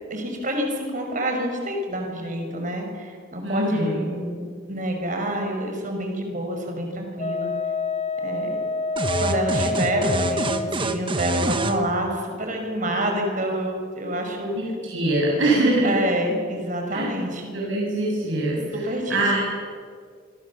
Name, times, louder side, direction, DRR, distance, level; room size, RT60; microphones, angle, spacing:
voice 1, 0.1-7.5 8.2-8.5 9.2-14.6 15.8-17.5 18.7-19.2, right 1 dB, 40° right, 3 dB, 5.6 m, -27 dB
voice 2, 3.4-4.0 14.6-15.9 16.9-17.1 17.5-18.6 19.1-19.4, right 1 dB, 80° right, -4 dB, 7.3 m, -23 dB
Wind instrument woodwind instrument, 7.2-10.9, left 3 dB, 35° left, 1.4 m, -28 dB
sound 1, 9.0-11.8, right 2 dB, 25° right, 1.5 m, -25 dB
27.0 x 25.0 x 7.4 m, 2.1 s
head